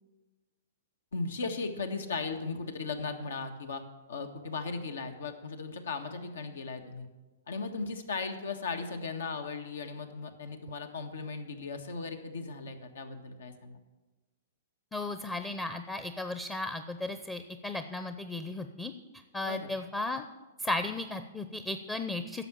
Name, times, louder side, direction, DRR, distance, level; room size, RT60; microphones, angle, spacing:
voice 1, 1.1-3.8 4.1-7.1 7.5-13.8 19.4-19.7, left 4 dB, 85° left, 6 dB, 1.6 m, -37 dB
voice 2, 14.9-18.9 19.3-20.2 20.6-22.4, left 2 dB, 15° left, 8 dB, 0.7 m, -35 dB
11.0 x 7.1 x 8.7 m, 1.2 s
hypercardioid pair, 135°, 0 cm